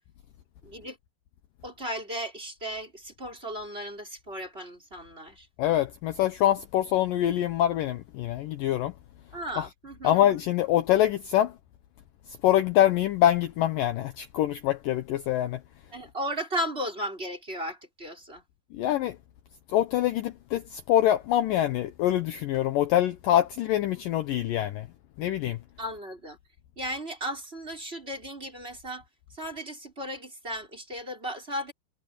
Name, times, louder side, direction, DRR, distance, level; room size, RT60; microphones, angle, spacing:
voice 1, 0.6-1.0 1.6-5.5 9.3-10.2 15.9-18.4 25.8-26.4 26.8-29.0 29.3-31.7, equal, 15° right, 5.5 m, -35 dB
voice 2, 5.6-8.9 9.6-9.7 10.0-11.5 12.4-15.6 18.7-19.2 19.7-24.9 25.2-25.6, left 12 dB, 70° left, 2.3 m, -25 dB
omnidirectional pair, 4.6 m